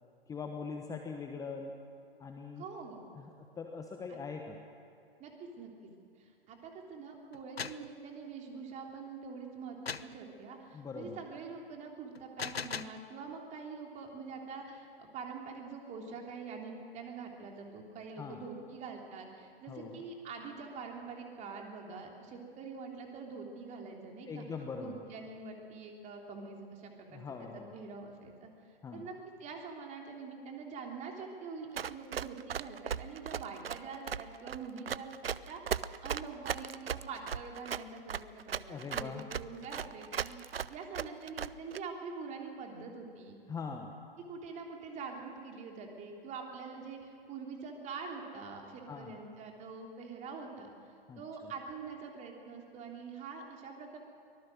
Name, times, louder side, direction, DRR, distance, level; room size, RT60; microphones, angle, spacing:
voice 1, 0.3-1.7 2.2-2.6 3.2-4.6 10.7-11.2 18.2-18.4 19.7-20.0 24.3-25.0 27.1-27.7 28.8-29.1 38.7-39.2 43.5-44.0 48.9-49.1 51.1-51.5, left 5 dB, 10° left, 3 dB, 1.2 m, -42 dB
voice 2, 2.6-3.0 4.1-4.2 5.2-5.7 6.2-24.4 24.8-28.5 28.9-43.4 44.3-54.0, right 4 dB, 25° right, 1 dB, 3.3 m, -45 dB
sound 1, 7.3-7.9 9.9-10.2 12.2-13.0, left 6 dB, 85° left, 0.8 m, -39 dB
Run, 31.8-41.8, right 8 dB, 75° right, 0.7 m, -37 dB
24.5 x 19.0 x 6.4 m, 2.6 s
figure-of-eight pair, 115°, 30 cm